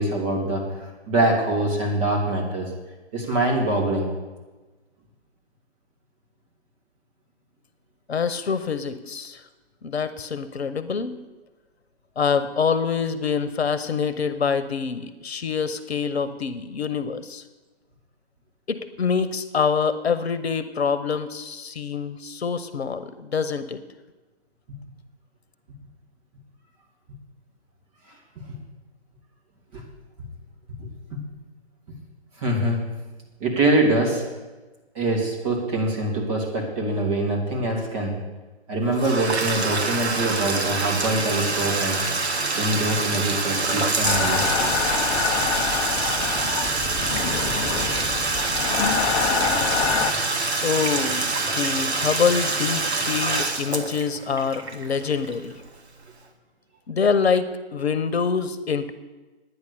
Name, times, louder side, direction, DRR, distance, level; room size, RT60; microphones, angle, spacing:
voice 1, 0.0-2.7 3.1-4.1 29.7-29.8 30.8-31.2 32.4-32.8 33.4-34.2 34.9-38.1 38.7-42.0 42.5-44.9, right 2 dB, 30° right, 0 dB, 2.9 m, -24 dB
voice 2, 8.1-9.4 9.8-11.1 12.2-17.4 18.7-23.8 50.6-55.6 56.9-58.9, left 6 dB, 70° left, 13 dB, 1.0 m, -25 dB
Bathtub (filling or washing), 38.9-55.7, right 3 dB, 70° right, 1.5 m, -26 dB
sound 1, 44.0-50.1, left 6 dB, 20° left, 0.8 m, -26 dB
10.5 x 9.5 x 6.9 m, 1.2 s
figure-of-eight pair, 135°, 33 cm